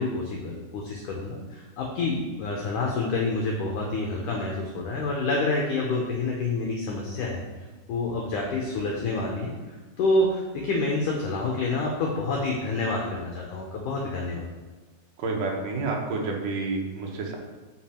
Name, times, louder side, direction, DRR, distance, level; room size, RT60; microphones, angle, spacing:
voice 1, 0.0-7.4 7.9-14.5, left 2 dB, 80° left, -1 dB, 1.8 m, -28 dB
voice 2, 15.2-17.4, right 3 dB, 70° right, 0 dB, 2.3 m, -29 dB
7.9 x 5.4 x 4.3 m, 1.3 s
omnidirectional pair, 4.9 m